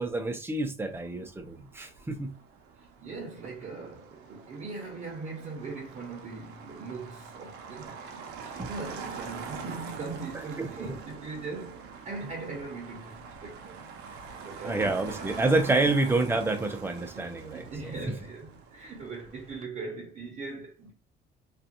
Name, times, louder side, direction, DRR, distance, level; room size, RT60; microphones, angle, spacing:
voice 1, 0.0-2.4 8.6-8.7 10.6-10.9 14.6-17.7 18.1-18.2, right 2 dB, 15° right, 0.5 m, -28 dB
Motor vehicle (road), 0.9-19.6, right 5 dB, 80° right, 0.6 m, -44 dB
voice 2, 3.0-14.1 14.4-14.9 15.7-15.9 17.1-20.9, right 3 dB, 40° right, 0.8 m, -40 dB
2.5 x 2.3 x 2.8 m
cardioid pair, 110°, 17 cm